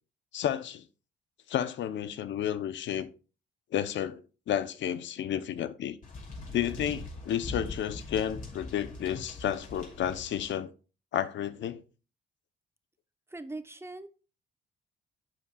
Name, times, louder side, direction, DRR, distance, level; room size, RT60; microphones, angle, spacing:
voice 1, 0.3-0.8 1.5-3.1 3.7-4.2 4.5-6.0 6.5-10.7 11.1-11.8, left 10 dB, 70° left, 0.7 m, -31 dB
sound 1, 6.0-10.5, left 2 dB, 40° left, 3.0 m, -41 dB
voice 2, 13.3-14.1, right 2 dB, 10° right, 0.9 m, -40 dB
10.5 x 7.3 x 2.3 m
cardioid pair, 90°, 20 cm